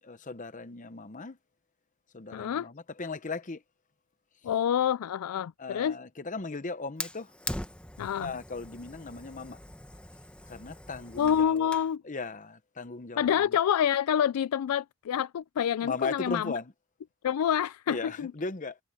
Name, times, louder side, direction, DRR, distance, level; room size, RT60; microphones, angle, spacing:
voice 1, 0.0-1.4 2.1-3.6 5.6-7.3 8.2-9.6 10.5-11.7 12.0-13.6 15.8-16.7 17.9-18.8, left 3 dB, 35° left, 0.8 m, -37 dB
voice 2, 2.3-2.7 4.4-6.0 8.0-8.3 11.2-12.0 13.2-16.5 17.2-18.3, left 9 dB, 90° left, 0.3 m, -27 dB
Fire, 7.0-12.0, left 1 dB, 5° left, 1.2 m, -42 dB
head